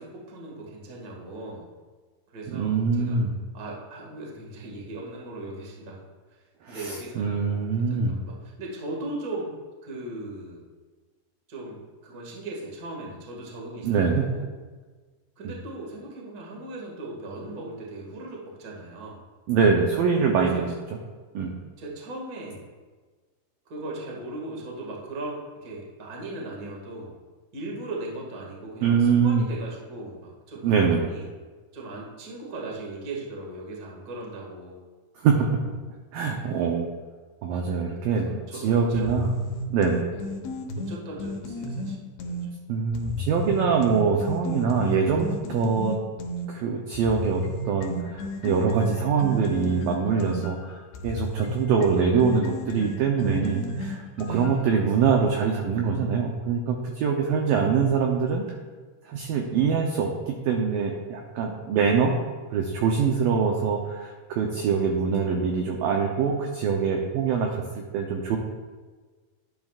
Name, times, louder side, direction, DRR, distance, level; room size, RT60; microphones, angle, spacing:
voice 1, 0.0-1.7 2.3-3.2 3.5-6.0 6.7-9.5 9.8-10.6 11.5-14.6 15.4-19.2 20.3-20.6 21.8-22.7 23.6-27.2 27.5-31.3 31.7-34.8 36.2-36.5 38.0-39.1 40.1-40.2 40.7-42.0 42.2-42.4 54.2-54.8 57.2-57.7, right 2 dB, 45° right, -2 dB, 1.1 m, -38 dB
voice 2, 2.5-3.3 6.7-8.2 13.8-14.3 19.5-20.7 21.3-21.6 28.8-29.5 30.6-31.0 35.2-35.5 36.1-36.9 37.4-39.3 39.7-40.1 42.7-46.0 46.5-50.7 51.0-58.5 59.1-62.2 62.5-68.4, right 5 dB, 85° right, 1 dB, 2.0 m, -24 dB
sound 1, 38.9-42.5 42.9-46.5 46.9-54.7, equal, 80° left, 3.3 m, -33 dB
11.5 x 11.0 x 2.4 m, 1.4 s
omnidirectional pair, 5.0 m